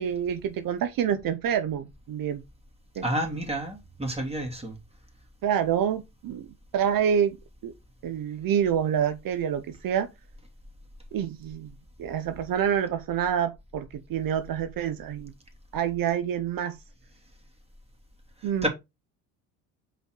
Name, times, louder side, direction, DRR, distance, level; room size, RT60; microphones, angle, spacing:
voice 1, 0.0-2.4 3.0-3.1 5.4-6.5 6.7-7.4 7.6-7.7 8.0-10.1 11.1-11.7 12.0-15.3 15.7-16.8 18.4-18.7, right 9 dB, 50° right, 1.0 m, -27 dB
voice 2, 3.0-4.8 18.6-18.7, right 1 dB, 15° right, 2.8 m, -29 dB
5.3 x 4.4 x 4.5 m
hypercardioid pair, 60°, 43 cm